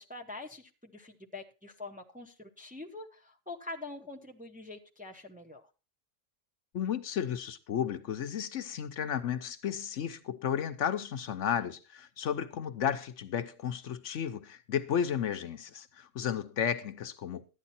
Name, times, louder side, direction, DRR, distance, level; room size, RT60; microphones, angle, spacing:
voice 1, 0.0-5.6, left 2 dB, 5° right, 0.8 m, -45 dB
voice 2, 6.7-17.4, left 8 dB, 65° left, 1.0 m, -33 dB
12.5 x 9.4 x 4.2 m
omnidirectional pair, 1.4 m